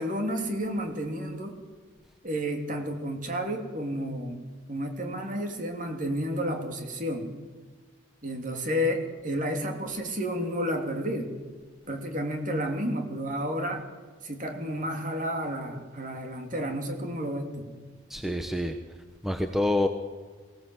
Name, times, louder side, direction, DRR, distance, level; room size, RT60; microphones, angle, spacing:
voice 1, 0.0-1.6 2.2-7.3 8.2-11.3 11.9-13.9 14.2-17.7, equal, 40° right, 3 dB, 3.2 m, -31 dB
voice 2, 18.1-18.7 19.2-19.9, left 1 dB, ahead, 5 dB, 1.0 m, -26 dB
22.5 x 17.5 x 7.9 m, 1.4 s
head